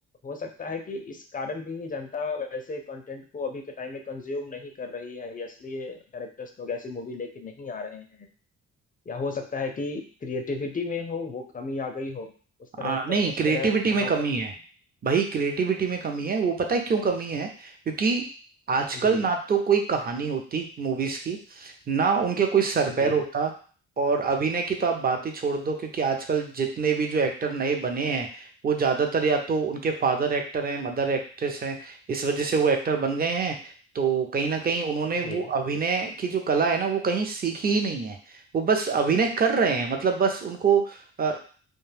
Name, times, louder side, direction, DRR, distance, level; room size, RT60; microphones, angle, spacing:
voice 1, 0.2-8.3 9.1-12.3 12.6-13.7 14.0-14.1 18.9-19.2 23.0-23.2 35.2-35.5, left 4 dB, 30° left, 6 dB, 0.4 m, -34 dB
voice 2, 12.8-14.5 15.0-18.3 18.7-23.5 24.0-41.4, right 5 dB, 30° right, 4 dB, 0.6 m, -25 dB
2.5 x 2.2 x 3.3 m, 0.41 s
cardioid pair, 90°, 30 cm